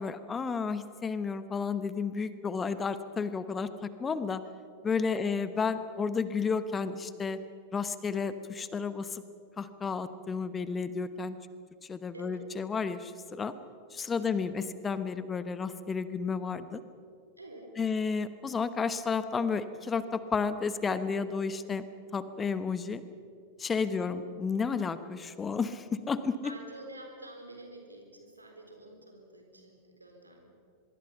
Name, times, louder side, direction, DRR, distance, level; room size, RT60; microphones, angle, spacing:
voice 1, 0.0-4.4 4.8-7.4 7.7-9.2 9.6-11.3 11.8-13.5 13.9-16.8 17.8-21.8 22.1-23.0 23.6-26.5, left 5 dB, 20° left, 13 dB, 1.1 m, -32 dB
voice 2, 12.1-12.4 14.2-14.5 17.4-17.7 23.8-24.1 26.4-30.5, right 1 dB, 80° right, 3 dB, 4.1 m, -49 dB
24.5 x 22.0 x 5.7 m, 2.4 s
figure-of-eight pair, 90°, 0 cm